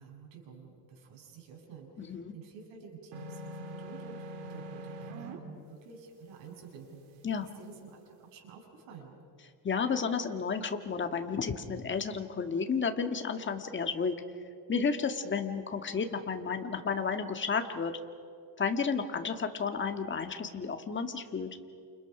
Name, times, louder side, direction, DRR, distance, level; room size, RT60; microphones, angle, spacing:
voice 1, 0.0-7.2 7.6-9.2, right 5 dB, 75° right, 0 dB, 7.5 m, -50 dB
voice 2, 2.0-2.3 7.2-7.5 9.6-14.2 14.7-17.9 18.6-21.5, left 5 dB, 25° left, 6 dB, 1.7 m, -32 dB
sound 1, 3.1-5.4, right 1 dB, 90° right, 3.2 m, -42 dB
29.0 x 28.5 x 6.0 m, 2.4 s
cardioid pair, 140°, 45 cm